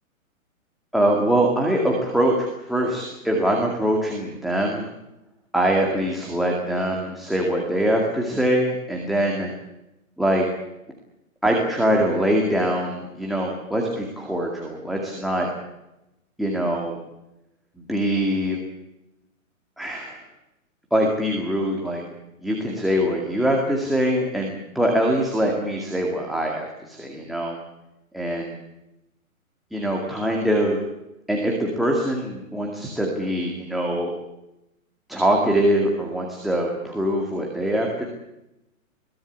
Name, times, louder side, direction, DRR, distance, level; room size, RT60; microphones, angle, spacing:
voice 1, 0.9-4.9 5.5-9.5 10.2-10.5 11.4-15.5 16.4-17.0 17.9-18.6 19.8-20.2 20.9-22.0 22.4-27.5 28.1-28.6 29.7-30.8 31.3-34.1 35.1-38.0, right 1 dB, ahead, -1 dB, 2.2 m, -23 dB
22.0 x 17.5 x 9.8 m, 0.90 s
hypercardioid pair, 165°, 42 cm